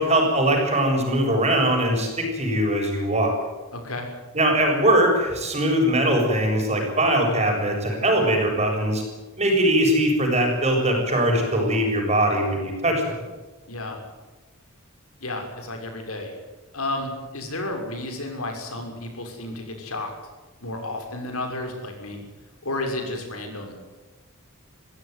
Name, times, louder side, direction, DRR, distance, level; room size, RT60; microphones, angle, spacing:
voice 1, 0.0-3.3 4.3-9.0 9.4-13.2, right 1 dB, 30° right, 2 dB, 7.4 m, -21 dB
voice 2, 3.7-4.1 13.7-14.0 15.2-16.3 16.7-20.1 20.6-22.2 22.6-23.8, left 2 dB, 75° left, 3 dB, 6.3 m, -32 dB
25.0 x 16.0 x 9.6 m, 1.2 s
head